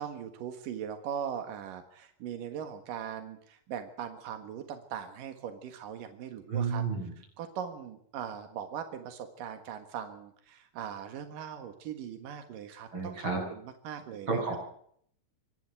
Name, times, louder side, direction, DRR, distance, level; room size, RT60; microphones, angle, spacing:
voice 1, 0.0-6.8 7.2-14.3, right 8 dB, 90° right, 8 dB, 3.3 m, -40 dB
voice 2, 6.5-7.1 12.9-13.4 14.3-14.6, right 4 dB, 35° right, 0 dB, 8.9 m, -31 dB
26.0 x 11.0 x 9.1 m, 0.64 s
omnidirectional pair, 3.7 m